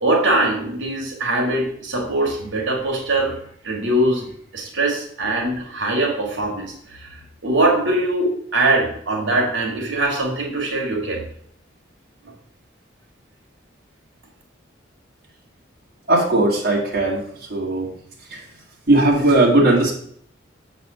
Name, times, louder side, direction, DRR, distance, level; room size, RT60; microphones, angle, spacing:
voice 1, 0.0-3.3 3.6-4.3 4.5-11.2, right 2 dB, 80° right, -1 dB, 2.1 m, -22 dB
voice 2, 16.1-17.2 17.5-17.9 18.3-18.4 18.9-19.9, right 2 dB, 55° right, -5 dB, 2.1 m, -17 dB
7.0 x 4.1 x 6.7 m, 0.65 s
head